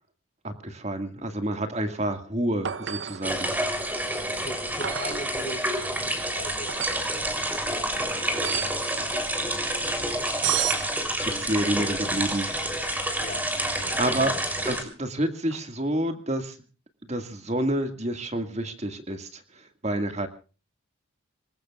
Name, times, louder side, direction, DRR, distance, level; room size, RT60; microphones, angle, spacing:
voice 1, 0.4-3.5 11.3-12.5 13.8-16.6 17.1-20.3, right 1 dB, 35° right, 7 dB, 2.0 m, -29 dB
sound 1, 2.7-3.3 4.8-5.3 6.7-7.1 8.4-8.9 10.4-10.9 12.2-12.7 15.5-15.6, right 10 dB, 60° right, 0.8 m, -31 dB
sound 2, 3.2-14.8, right 1 dB, 10° right, 3.4 m, -28 dB
voice 2, 4.4-5.7 6.0-7.0 8.2-9.4 12.0-12.1 13.2-13.5 13.8-14.6, left 1 dB, 45° left, 6 dB, 4.4 m, -41 dB
26.5 x 21.0 x 2.4 m, 0.37 s
head